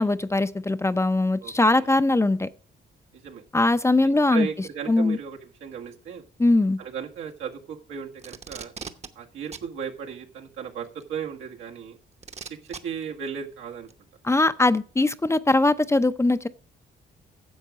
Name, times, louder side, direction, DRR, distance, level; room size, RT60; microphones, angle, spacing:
voice 1, 0.0-2.5 3.5-4.5 4.9-5.2 6.4-6.8 14.2-16.5, left 2 dB, 15° left, 0.5 m, -21 dB
voice 2, 1.4-1.9 3.1-3.4 4.0-6.2 6.8-8.7 9.1-12.0 12.4-13.9, right 7 dB, 90° right, 1.7 m, -36 dB
Packing tape duct tape, 8.2-9.1 9.5-9.7 11.0-11.1 12.2-12.8 13.9-14.0, right 5 dB, 35° right, 0.9 m, -38 dB
10.0 x 7.2 x 5.0 m
cardioid pair, 90°, 20 cm